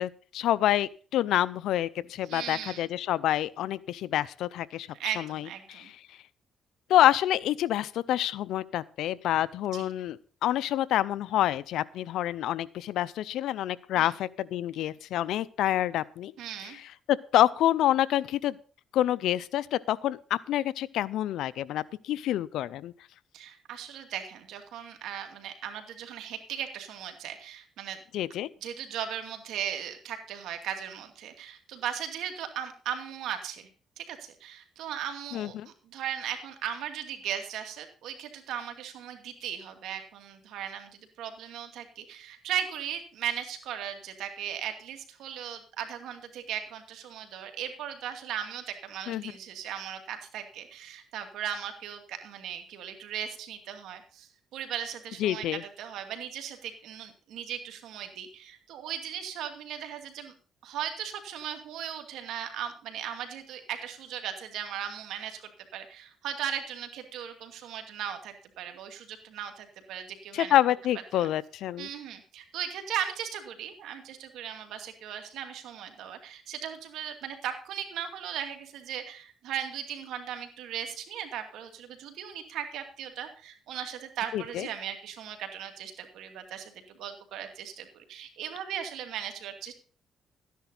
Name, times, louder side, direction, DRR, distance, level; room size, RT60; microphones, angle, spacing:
voice 1, 0.0-4.9 5.2-5.9 6.9-16.3 16.6-16.7 17.1-18.6 18.9-22.9 28.1-28.5 35.3-35.7 49.1-49.3 55.2-55.6 70.3-71.9 84.3-84.7, left 13 dB, 85° left, 19 dB, 0.5 m, -27 dB
voice 2, 2.2-2.8 5.0-5.9 9.7-9.9 13.9-14.1 16.4-16.8 23.3-28.0 28.6-33.7 34.0-60.3 60.6-70.5 71.1-71.3 71.8-89.7, right 9 dB, 85° right, 6 dB, 2.4 m, -37 dB
13.0 x 10.5 x 3.9 m, 0.39 s
cardioid pair, 90°, 0 cm